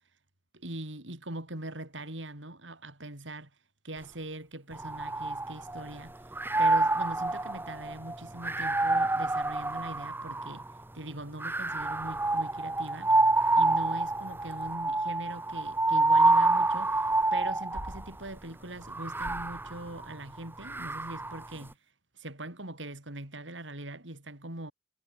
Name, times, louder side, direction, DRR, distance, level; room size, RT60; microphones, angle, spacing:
voice 1, 0.5-3.5 3.8-13.2 13.6-21.8 22.1-24.7, right 1 dB, 90° right, 5.9 m, -42 dB
sound 1, 4.7-5.9 6.3-10.7 11.4-18.1 18.8-21.4, right 2 dB, 10° right, 1.0 m, -27 dB
head